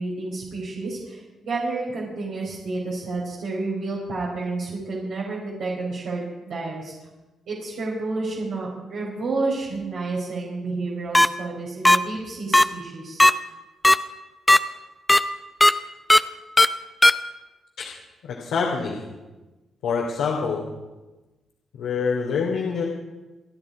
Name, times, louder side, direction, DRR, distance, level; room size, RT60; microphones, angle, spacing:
voice 1, 0.0-6.9 7.5-13.2, right 3 dB, 75° right, -5 dB, 4.9 m, -30 dB
sound 1, 11.1-11.3 11.9-12.0 12.5-12.6 13.2-13.3 13.8-14.0 14.5-14.6 15.1-15.2 15.6-15.7 16.1-16.2 16.6-16.7 17.0-17.1, left 1 dB, 10° left, 0.7 m, -13 dB
voice 2, 18.2-19.0 19.8-20.6 21.7-22.8, left 5 dB, 90° left, -2 dB, 2.7 m, -25 dB
29.5 x 10.0 x 4.9 m, 1.1 s
cardioid pair, 80°, 0 cm